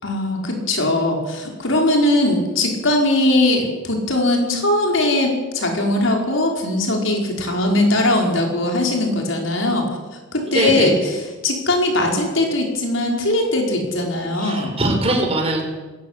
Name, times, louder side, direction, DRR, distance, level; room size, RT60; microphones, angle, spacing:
voice 1, 0.0-9.9 10.3-14.8, left 1 dB, 80° left, 1 dB, 5.2 m, -20 dB
voice 2, 10.5-10.9 14.4-15.6, right 2 dB, 30° right, 2 dB, 5.1 m, -21 dB
20.5 x 17.5 x 8.4 m, 1.3 s
head